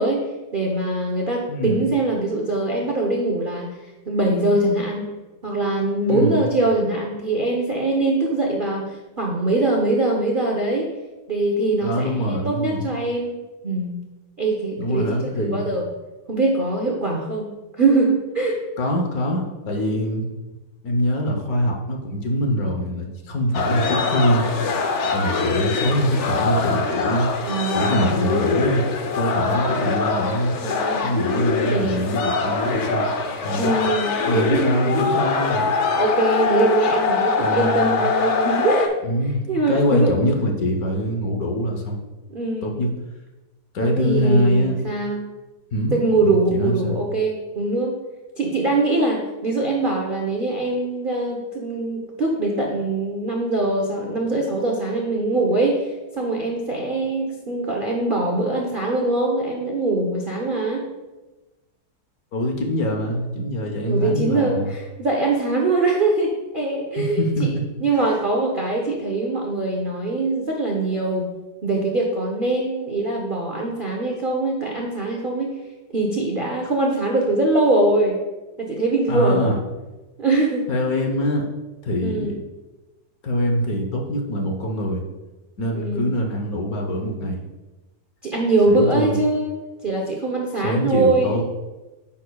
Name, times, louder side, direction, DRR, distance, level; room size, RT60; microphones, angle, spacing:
voice 1, 0.0-3.8 4.1-5.1 5.4-10.9 11.3-13.3 13.6-13.9 14.4-15.9 16.3-17.5 17.7-18.6 27.5-27.9 29.6-29.8 30.6-31.1 31.6-32.0 33.5-34.7 36.0-38.9 39.5-40.1 42.3-42.8 43.8-45.3 45.9-48.0 48.4-60.9 63.9-67.5 67.8-71.3 71.6-75.6 75.9-78.2 78.6-79.5 80.2-80.7 82.0-82.4 85.7-86.1 88.2-89.5 89.8-91.4, right 2 dB, 45° right, -1 dB, 0.6 m, -22 dB
voice 2, 1.5-1.9 6.1-6.4 11.8-12.9 14.8-15.7 18.8-20.2 20.8-24.5 25.1-27.3 27.7-28.9 29.1-30.5 31.0-33.1 33.4-33.7 34.3-35.7 37.4-38.1 39.0-42.0 42.6-42.9 43.7-44.8 45.7-45.9 46.2-47.0 62.3-64.7 67.0-67.5 79.1-79.6 80.7-81.5 81.8-82.4 83.2-85.0 85.6-87.4 88.7-89.2 90.6-91.4, equal, 60° left, 2 dB, 1.2 m, -23 dB
sound 1, 23.5-38.9, left 4 dB, 75° left, 0.6 m, -23 dB
9.5 x 6.4 x 2.3 m, 1.1 s
omnidirectional pair, 2.0 m